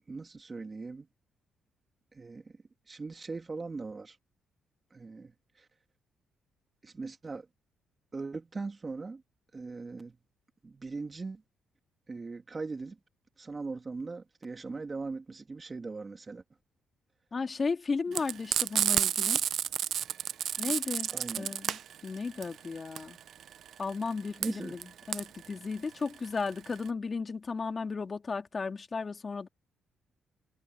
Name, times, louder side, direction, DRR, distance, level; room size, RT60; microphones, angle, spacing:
voice 1, 0.1-1.1 2.1-2.6 2.9-4.2 4.9-5.7 6.8-7.5 8.1-9.2 9.5-10.2 10.6-11.4 12.1-13.0 13.4-16.4 18.1-18.2 21.1-21.6 24.4-24.8, right 3 dB, 30° right, 2.8 m, -40 dB
voice 2, 17.3-19.4 20.6-23.2 23.8-29.5, left 4 dB, 35° left, 3.0 m, -35 dB
Frying (food), 18.1-26.9, right 9 dB, 65° right, 0.5 m, -30 dB
cardioid pair, 90°, 0 cm